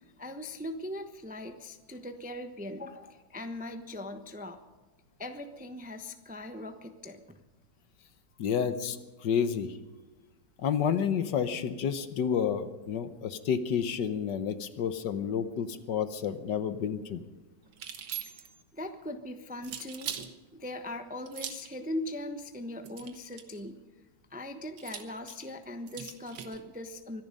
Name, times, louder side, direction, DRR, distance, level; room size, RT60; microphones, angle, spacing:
voice 1, 0.2-4.6 5.2-7.4 18.4-18.5 18.7-20.1 20.5-23.8 24.3-27.2, left 1 dB, 10° right, 7 dB, 0.5 m, -40 dB
voice 2, 8.4-9.0 9.2-9.7 10.6-17.2, left 7 dB, 70° left, 11 dB, 1.5 m, -30 dB
sound 1, 17.7-18.6 19.6-20.3 21.3-21.7 22.8-23.6 24.8-26.6, right 8 dB, 90° right, 2.0 m, -41 dB
24.0 x 11.0 x 5.4 m, 1.2 s
omnidirectional pair, 2.1 m